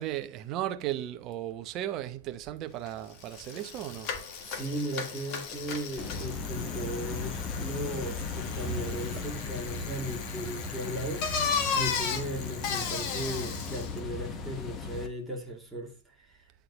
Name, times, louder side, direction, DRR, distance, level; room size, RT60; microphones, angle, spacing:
voice 1, 0.0-4.1, right 12 dB, 35° right, 0.8 m, -35 dB
Bicycle, 2.9-3.0 3.2-14.0, left 6 dB, 40° left, 1.6 m, -35 dB
voice 2, 4.4-16.4, equal, 5° right, 2.4 m, -37 dB
sound 1, 6.0-15.1, left 3 dB, 25° left, 1.2 m, -37 dB
9.4 x 4.0 x 3.1 m
hypercardioid pair, 110°, 0 cm